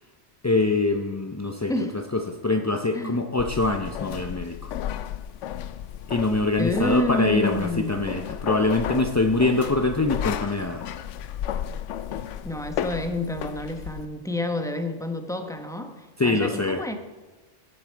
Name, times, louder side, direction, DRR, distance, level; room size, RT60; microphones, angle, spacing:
voice 1, 0.4-1.7 2.1-4.7 6.1-10.8 16.2-16.8, left 2 dB, 25° left, 4 dB, 0.4 m, -24 dB
voice 2, 1.7-2.0 2.9-3.2 6.6-7.9 12.4-17.0, left 1 dB, 5° left, 6 dB, 0.9 m, -28 dB
sound 1, 3.4-14.0, left 10 dB, 80° left, 0.9 m, -33 dB
16.0 x 8.7 x 4.6 m, 1.2 s
omnidirectional pair, 1.2 m